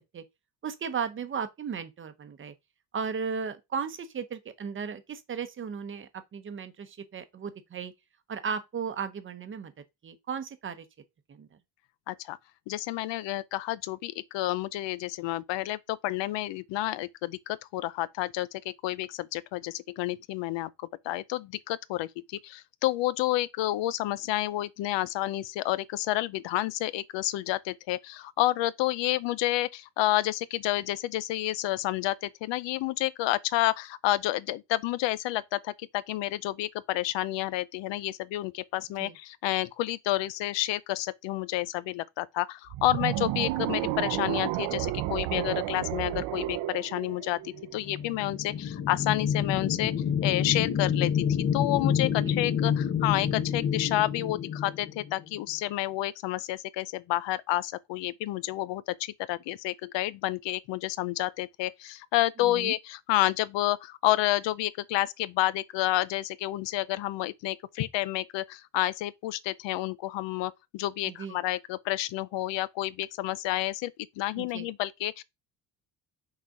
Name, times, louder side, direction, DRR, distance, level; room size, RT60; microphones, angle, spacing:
voice 1, 0.6-2.5 2.9-7.9 8.3-9.7 10.0-10.8 11.3-11.5 39.0-39.2 52.2-52.4 62.4-62.7 71.0-71.4 74.4-74.7, right 6 dB, 30° right, 0.7 m, -35 dB
voice 2, 12.1-12.4 12.7-20.7 21.0-49.9 50.2-51.3 51.5-73.9 74.2-75.2, left 15 dB, 90° left, 0.7 m, -30 dB
sound 1, 42.7-47.9, right 16 dB, 85° right, 0.7 m, -31 dB
sound 2, 47.7-55.4, left 8 dB, 30° left, 0.6 m, -28 dB
6.3 x 4.0 x 4.7 m
cardioid pair, 175°, 43 cm